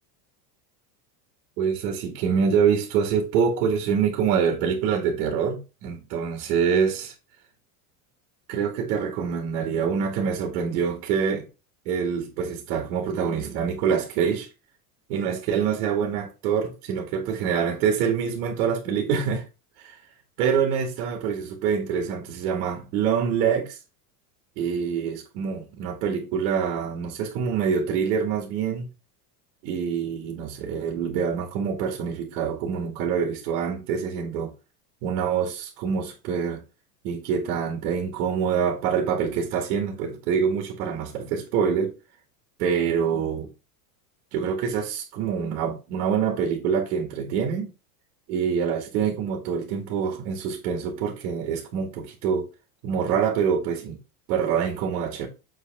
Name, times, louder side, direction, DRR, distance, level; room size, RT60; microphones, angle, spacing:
voice 1, 1.6-7.1 8.5-11.5 11.9-14.5 15.1-19.4 19.8-20.0 20.4-23.8 24.6-28.9 29.6-34.5 35.0-36.6 37.0-41.9 42.6-43.5 44.3-47.7 48.3-52.5 52.8-54.0 54.3-55.3, right 7 dB, 70° right, 2.3 m, -25 dB
7.6 x 5.4 x 3.5 m
supercardioid pair, 140°, 46 cm